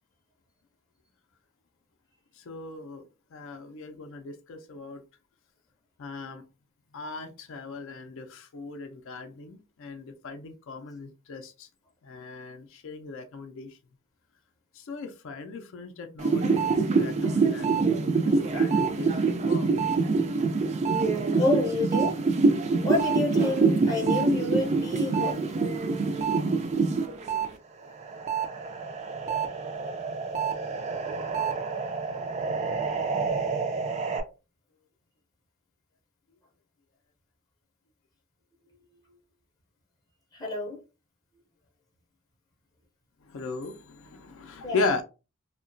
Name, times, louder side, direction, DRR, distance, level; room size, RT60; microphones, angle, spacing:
voice 1, 2.4-3.0 3.3-5.0 6.0-6.4 6.9-11.7 12.0-13.7 14.8-17.9 18.2-19.7 43.3-45.0, left 3 dB, 60° left, 0.4 m, -37 dB
sound 1, 16.2-27.5 27.8-34.2, right 4 dB, 30° right, 0.3 m, -26 dB
voice 2, 21.3-22.2 22.8-25.4 40.3-40.8 44.6-44.9, left 3 dB, 20° left, 0.6 m, -28 dB
2.8 x 2.2 x 2.5 m
head